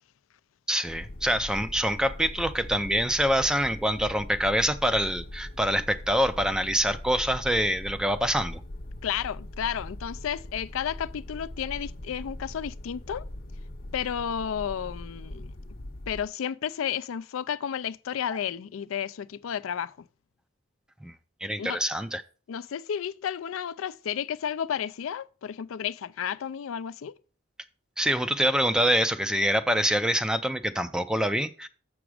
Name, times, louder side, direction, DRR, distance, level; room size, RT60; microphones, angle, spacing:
voice 1, 0.7-8.6 21.0-21.1 21.4-22.2 28.0-31.7, equal, 5° right, 0.3 m, -25 dB
sound 1, 0.8-16.3, left 1 dB, 50° left, 0.7 m, -41 dB
voice 2, 9.0-13.2 13.9-15.5 16.1-20.0 21.6-21.8 22.5-27.1, left 8 dB, 90° left, 0.4 m, -32 dB
7.0 x 6.1 x 4.8 m
head